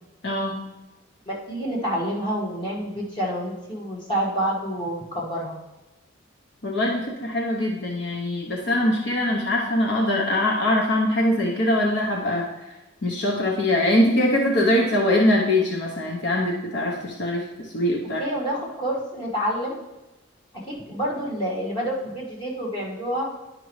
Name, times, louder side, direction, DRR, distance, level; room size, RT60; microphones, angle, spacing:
voice 1, 0.2-0.6 6.6-12.5 13.0-18.2, left 1 dB, 60° left, -1 dB, 0.8 m, -22 dB
voice 2, 1.3-5.5 18.2-19.7 20.7-23.3, equal, 25° left, -5 dB, 1.6 m, -28 dB
10.5 x 5.2 x 3.1 m, 1.0 s
head